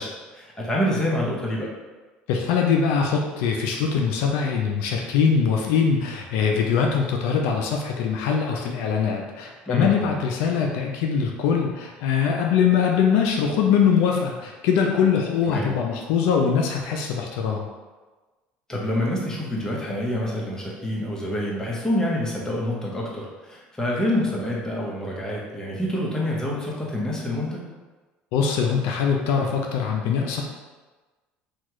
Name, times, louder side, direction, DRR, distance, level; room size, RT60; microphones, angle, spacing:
voice 1, 0.0-1.7 9.7-10.1 15.5-15.8 18.7-27.6, left 1 dB, 15° left, -4 dB, 0.9 m, -27 dB
voice 2, 2.3-17.7 28.3-30.4, left 6 dB, 80° left, 1 dB, 0.3 m, -22 dB
2.9 x 2.3 x 2.9 m, 1.3 s
supercardioid pair, 85°, 4 cm